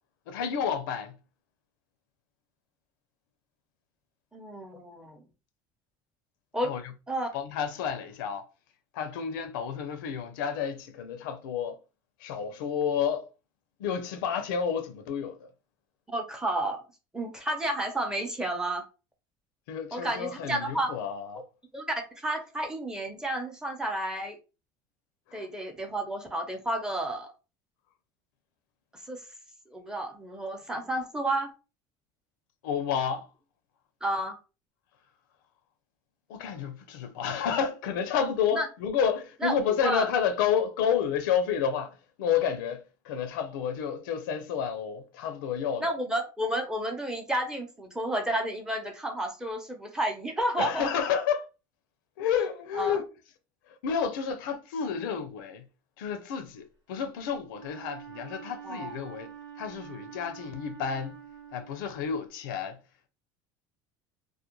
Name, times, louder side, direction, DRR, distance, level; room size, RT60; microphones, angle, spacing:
voice 1, 0.3-1.1 6.6-6.8 7.3-8.4 8.9-11.8 12.2-13.3 13.8-15.5 19.7-21.4 25.3-25.5 32.6-33.3 36.3-45.8 50.6-51.5 52.2-53.0 53.8-55.6 56.0-59.3 59.6-61.2 61.5-62.8, left 7 dB, 90° left, 0.5 m, -30 dB
voice 2, 4.3-5.2 6.5-6.7 7.1-7.3 16.1-16.8 17.1-18.8 19.9-20.9 21.7-21.9 22.2-24.4 25.3-27.3 29.1-29.2 29.7-31.5 34.0-34.3 38.5-38.7 39.4-40.1 45.8-50.9 52.7-53.0 58.6-59.0, right 1 dB, 5° right, 0.6 m, -31 dB
Wind instrument woodwind instrument, 57.5-62.2, right 8 dB, 55° right, 0.8 m, -46 dB
2.4 x 2.2 x 2.9 m
supercardioid pair, 120°, 11 cm